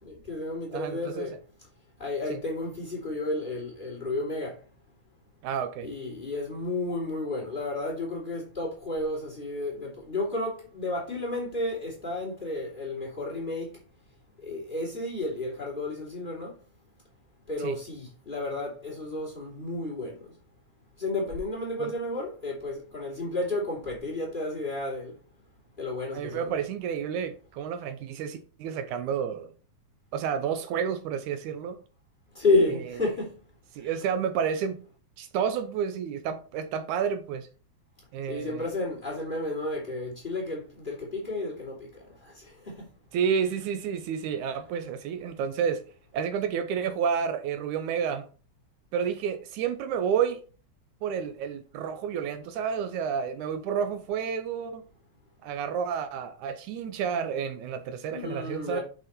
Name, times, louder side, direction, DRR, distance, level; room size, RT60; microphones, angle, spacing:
voice 1, 0.0-1.4 2.0-4.6 5.8-13.8 14.4-16.6 17.5-20.4 21.0-25.1 25.8-26.6 32.3-33.4 33.8-33.9 38.3-42.9 58.1-58.8, left 2 dB, 15° left, 2.6 m, -32 dB
voice 2, 0.7-1.3 2.3-2.4 5.4-5.9 17.6-17.8 21.8-21.9 26.1-29.5 30.1-31.8 32.7-32.8 33.7-34.8 35.2-37.5 38.1-38.7 43.1-45.8 46.1-48.3 48.9-50.4 51.0-54.8 55.4-58.8, right 7 dB, 80° right, 2.2 m, -30 dB
6.5 x 6.2 x 4.3 m
omnidirectional pair, 3.5 m